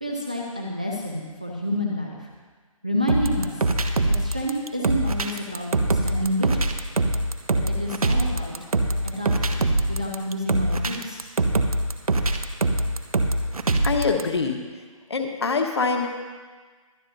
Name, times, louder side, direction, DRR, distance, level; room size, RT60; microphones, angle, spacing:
voice 1, 0.0-2.3 2.8-3.6 4.1-6.7 7.5-8.5 9.0-11.2, equal, 15° right, -2 dB, 0.5 m, -29 dB
sound 1, 3.1-14.2, right 2 dB, 85° right, 1.2 m, -23 dB
voice 2, 13.8-14.6 15.1-16.1, left 4 dB, 50° left, 4 dB, 1.3 m, -24 dB
23.0 x 9.5 x 2.7 m, 1.4 s
hypercardioid pair, 175°, 18 cm